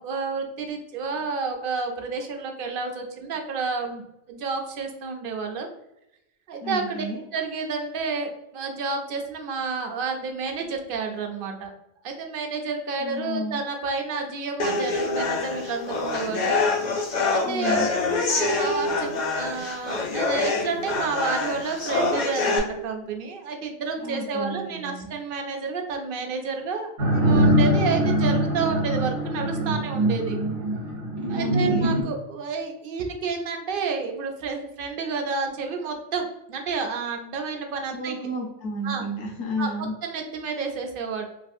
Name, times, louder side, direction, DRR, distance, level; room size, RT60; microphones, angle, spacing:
voice 1, 0.0-4.0 4.3-5.7 6.5-7.1 7.3-11.7 12.0-16.6 16.9-17.0 17.3-17.8 18.3-30.4 31.3-38.3 38.8-39.1 39.6-41.2, right 4 dB, 60° right, 3 dB, 0.6 m, -30 dB
voice 2, 6.6-7.2 13.0-13.6 17.4-17.9 24.0-25.1 31.3-31.9 37.9-39.9, equal, 75° left, 0 dB, 1.1 m, -32 dB
sound 1, 14.6-22.6, left 3 dB, 50° left, 0.5 m, -25 dB
sound 2, 27.0-32.0, right 1 dB, 75° right, 1.1 m, -22 dB
3.4 x 2.3 x 2.5 m, 0.86 s
omnidirectional pair, 1.2 m